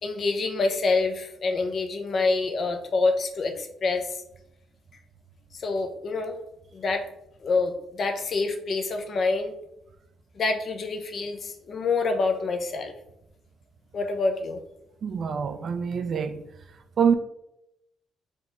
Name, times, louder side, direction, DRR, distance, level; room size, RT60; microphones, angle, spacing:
voice 1, 0.0-4.2 5.6-6.4 6.7-7.0 7.4-9.5 10.4-12.9 13.9-14.6, left 3 dB, 50° left, 0.7 m, -26 dB
voice 2, 15.0-16.4 17.0-17.1, right 7 dB, 55° right, 0.4 m, -25 dB
4.3 x 3.0 x 3.4 m
cardioid pair, 90°, 0 cm